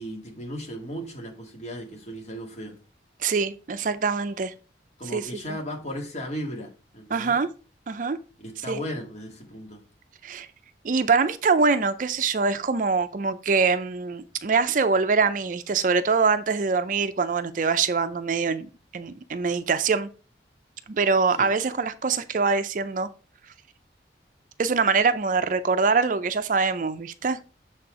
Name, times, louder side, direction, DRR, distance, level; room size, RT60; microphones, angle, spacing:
voice 1, 0.0-2.8 5.0-7.4 8.4-9.8 21.4-21.5, equal, 40° left, 1.9 m, -36 dB
voice 2, 3.2-4.5 5.1-5.3 7.1-7.5 7.9-8.2 8.7-8.8 10.2-10.5 10.8-20.1 20.9-23.1 24.6-27.4, right 4 dB, 45° right, 0.4 m, -24 dB
6.8 x 4.3 x 4.8 m
head